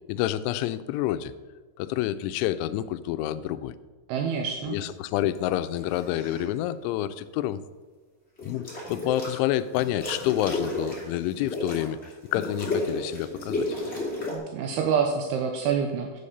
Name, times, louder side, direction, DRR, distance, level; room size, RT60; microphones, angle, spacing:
voice 1, 0.1-1.3 1.8-3.8 4.7-7.6 8.4-12.0 12.3-13.7, left 13 dB, 90° left, 13 dB, 3.0 m, -28 dB
voice 2, 4.1-4.8 14.3-16.2, right 6 dB, 80° right, 3 dB, 2.4 m, -27 dB
sound 1, 5.8-6.5 8.4-9.4 9.7-14.4, left 2 dB, 20° left, 1.8 m, -32 dB
8.4 x 7.8 x 6.5 m, 1.3 s
omnidirectional pair, 5.3 m